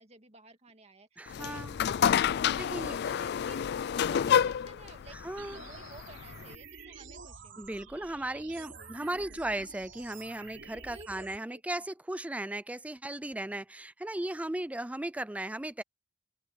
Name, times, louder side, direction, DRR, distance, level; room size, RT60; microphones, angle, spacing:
voice 1, 0.0-5.2 5.5-7.8 8.3-9.6 10.8-11.6, right 3 dB, 35° right, 2.2 m, -54 dB
voice 2, 1.2-1.8 2.5-3.0 5.1-5.6 7.6-15.8, right 1 dB, 5° right, 0.4 m, -36 dB
sound 1, 1.3-6.6, left 8 dB, 60° left, 0.3 m, -29 dB
sound 2, 5.4-11.4, right 5 dB, 70° right, 3.8 m, -49 dB
open air
head